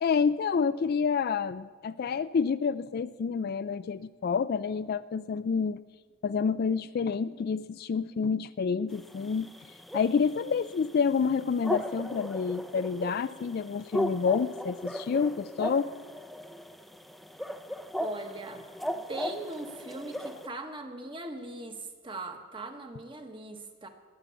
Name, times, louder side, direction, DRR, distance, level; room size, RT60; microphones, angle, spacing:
voice 1, 0.0-5.8 6.2-9.5 9.9-15.9, left 5 dB, 50° left, 15 dB, 0.3 m, -28 dB
sound 1, 8.9-20.5, equal, ahead, 0.5 m, -37 dB
voice 2, 18.0-18.6 19.1-23.9, right 2 dB, 25° right, 5 dB, 1.3 m, -40 dB
19.5 x 7.5 x 7.0 m, 1.5 s
head